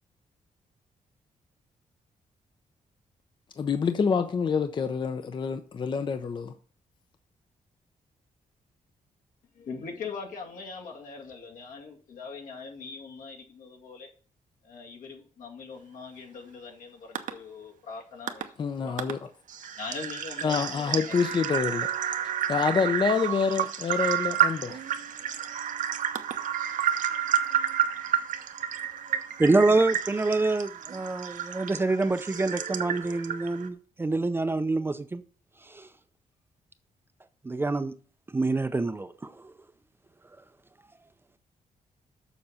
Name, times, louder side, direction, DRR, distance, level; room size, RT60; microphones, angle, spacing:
voice 1, 3.6-6.5 18.6-19.2 20.4-22.1 22.5-24.8, left 5 dB, 35° left, 0.5 m, -27 dB
voice 2, 9.5-14.1 14.6-19.2 19.8-21.1, left 4 dB, 75° left, 2.1 m, -41 dB
sound 1, 17.2-17.3 18.3-18.4 19.0-19.1 19.5-33.7, right 9 dB, 70° right, 0.9 m, -30 dB
voice 3, 29.4-35.2 35.7-35.9 37.4-38.0 38.3-39.3, right 3 dB, 15° right, 0.5 m, -26 dB
7.0 x 6.4 x 5.6 m
wide cardioid pair, 150°, 14 cm